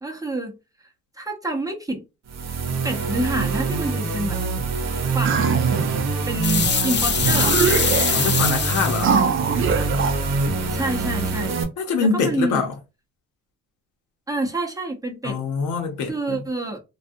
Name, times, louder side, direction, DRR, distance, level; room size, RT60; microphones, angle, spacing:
voice 1, 0.0-0.6 1.2-2.0 2.8-4.4 5.1-5.4 5.9-7.6 10.7-11.6 12.0-12.6 14.3-15.4 16.1-16.8, right 1 dB, 10° right, 0.7 m, -28 dB
sound 1, 2.3-11.6, right 4 dB, 60° right, 0.8 m, -25 dB
sound 2, 5.2-6.1 6.8-6.9 7.2-8.3 9.0-10.2, right 6 dB, 45° right, 0.5 m, -22 dB
sound 3, 6.4-9.2, left 6 dB, 35° left, 0.5 m, -23 dB
voice 2, 8.1-9.2 11.8-12.7 15.2-16.4, left 4 dB, 80° left, 0.9 m, -24 dB
2.4 x 2.3 x 2.6 m
cardioid pair, 90°, 30 cm